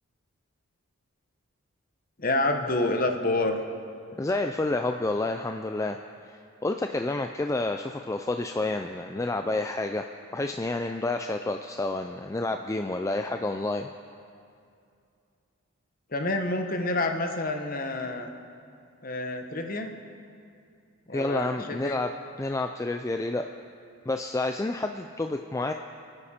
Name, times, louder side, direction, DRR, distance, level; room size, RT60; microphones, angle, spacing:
voice 1, 2.2-3.5 16.1-18.3 19.0-19.9 21.1-22.0, left 2 dB, 40° left, 5 dB, 1.0 m, -28 dB
voice 2, 4.2-6.0 6.2-10.1 10.3-13.9 21.1-22.1 22.4-23.5 24.1-25.7, left 2 dB, 15° left, 6 dB, 0.3 m, -29 dB
28.5 x 9.8 x 4.3 m, 2.4 s
head